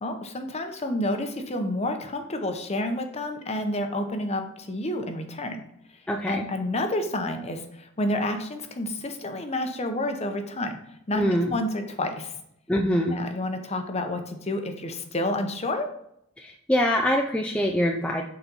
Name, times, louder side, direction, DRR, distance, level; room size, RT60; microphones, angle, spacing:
voice 1, 0.0-5.6 6.3-10.7 11.1-11.2 11.5-12.3 13.1-15.9, left 1 dB, 30° left, 6 dB, 0.7 m, -29 dB
voice 2, 6.1-6.4 11.1-11.5 12.7-13.2 16.4-18.2, equal, 5° left, 1 dB, 0.4 m, -24 dB
6.8 x 4.2 x 4.0 m, 0.76 s
head